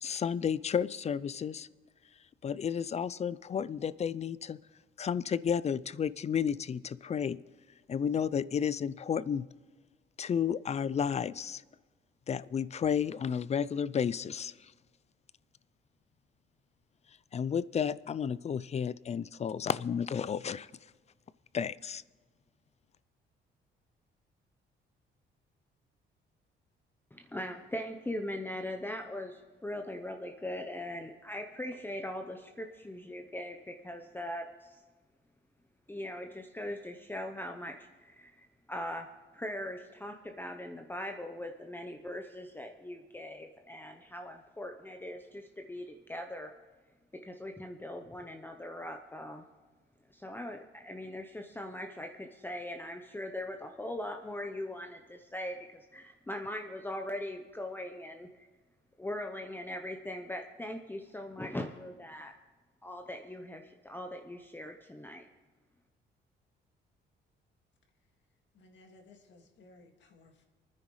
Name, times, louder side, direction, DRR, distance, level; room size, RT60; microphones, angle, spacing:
voice 1, 0.0-1.7 2.4-4.6 5.0-7.4 7.9-9.5 10.2-11.6 12.3-14.7 17.3-20.7 21.5-22.0, left 7 dB, 35° left, 18 dB, 0.4 m, -32 dB
voice 2, 27.1-34.8 35.9-39.1 39.3-46.5 47.1-49.4 50.1-58.3 59.0-62.3 62.8-65.2, left 1 dB, 10° left, 4 dB, 0.8 m, -40 dB
voice 3, 68.6-70.5, left 2 dB, 65° left, 3 dB, 2.0 m, -58 dB
28.0 x 9.9 x 3.2 m, 1.3 s
cardioid pair, 90°, 20 cm